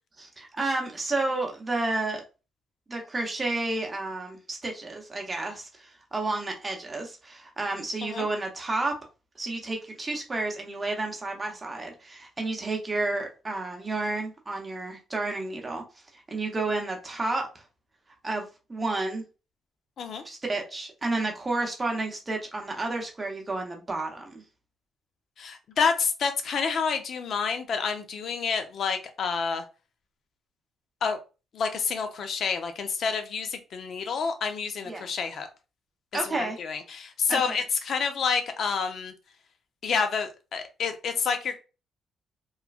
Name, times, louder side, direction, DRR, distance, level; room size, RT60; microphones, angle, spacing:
voice 1, 0.2-2.2 2.9-9.0 9.4-15.8 16.1-17.6 18.2-19.2 20.2-24.4 34.9-35.1 36.1-36.6 37.3-37.6, right 2 dB, 25° right, 0.8 m, -31 dB
voice 2, 25.4-29.6 31.0-31.2 31.5-35.5 36.2-39.1 39.8-41.6, left 5 dB, 60° left, 0.5 m, -28 dB
3.1 x 2.2 x 2.4 m
cardioid pair, 90°, 0 cm